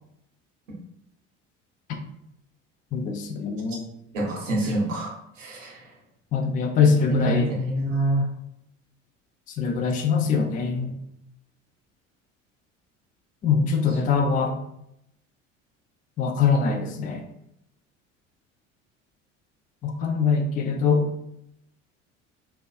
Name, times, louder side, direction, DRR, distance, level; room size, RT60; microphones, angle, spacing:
voice 1, 2.9-3.8 6.3-7.5 9.6-10.9 13.4-14.5 16.2-17.2 19.8-21.1, left 5 dB, 25° left, 4 dB, 0.4 m, -23 dB
voice 2, 4.1-5.9 7.1-8.3 13.9-14.0, right 1 dB, 80° right, -2 dB, 0.9 m, -27 dB
2.7 x 2.2 x 2.3 m, 0.78 s
figure-of-eight pair, 65°, 37 cm